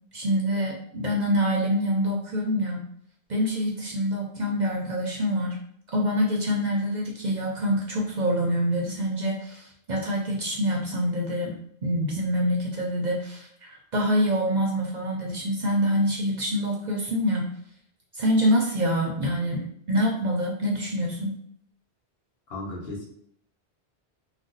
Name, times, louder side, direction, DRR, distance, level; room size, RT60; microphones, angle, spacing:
voice 1, 0.1-2.9 3.3-5.6 5.9-17.5 18.1-21.3, equal, 50° right, -1 dB, 0.6 m, -26 dB
voice 2, 22.5-23.0, left 2 dB, 65° left, -2 dB, 1.1 m, -35 dB
2.6 x 2.1 x 3.7 m, 0.67 s
omnidirectional pair, 1.1 m